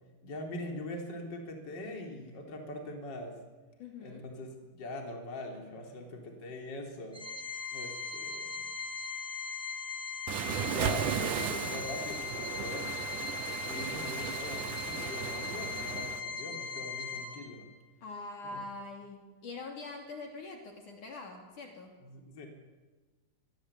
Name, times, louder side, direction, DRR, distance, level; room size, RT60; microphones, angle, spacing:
voice 1, 0.2-3.4 4.0-7.2 7.7-8.6 10.5-13.0 13.6-17.7 18.5-18.6 22.0-22.5, left 1 dB, 30° left, 2 dB, 3.8 m, -42 dB
voice 2, 3.8-4.2 11.0-11.2 18.0-22.1, left 3 dB, 55° left, 2 dB, 4.2 m, -44 dB
Organ, 7.1-17.7, left 6 dB, ahead, 3.5 m, -39 dB
Waves surf, 10.3-16.2, right 10 dB, 65° right, 2.2 m, -36 dB
27.0 x 22.5 x 8.5 m, 1.3 s
omnidirectional pair, 4.6 m